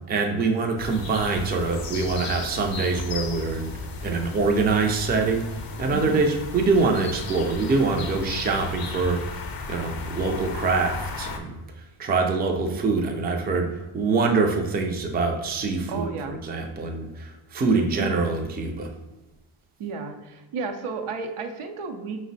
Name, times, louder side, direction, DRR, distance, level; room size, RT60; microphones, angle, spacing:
voice 1, 0.1-3.7 4.0-5.5 5.8-11.6 12.0-18.9, right 4 dB, 20° right, 3 dB, 0.3 m, -24 dB
sound 1, 0.8-11.4, left 3 dB, 50° left, 0.5 m, -35 dB
voice 2, 5.9-6.2 15.9-16.4 17.7-18.1 19.8-22.2, right 4 dB, 80° right, 5 dB, 0.6 m, -32 dB
5.1 x 2.1 x 3.9 m, 1.0 s
wide cardioid pair, 135°, 50 cm